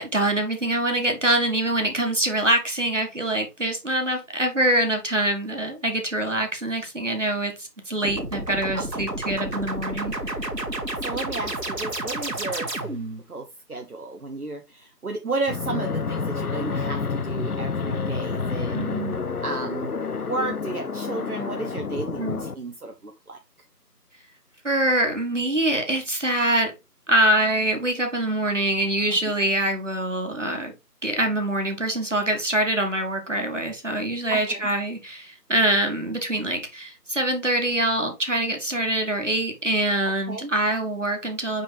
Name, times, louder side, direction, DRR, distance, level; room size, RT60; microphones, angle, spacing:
voice 1, 0.0-10.1 18.7-19.2 22.2-22.4 24.6-26.7 27.1-30.7 31.0-41.6, right 1 dB, 45° right, 1.6 m, -24 dB
sound 1, 8.0-13.2, right 2 dB, 90° right, 2.0 m, -30 dB
voice 2, 8.7-9.1 11.0-12.9 13.3-18.8 19.4-19.9 20.2-23.4 29.1-29.2 34.3-34.7 40.3-40.5, right 3 dB, 65° right, 0.9 m, -33 dB
Fixed-wing aircraft airplane, 15.5-22.5, left 4 dB, 65° left, 0.6 m, -29 dB
5.8 x 5.3 x 3.3 m
figure-of-eight pair, 175°, 49 cm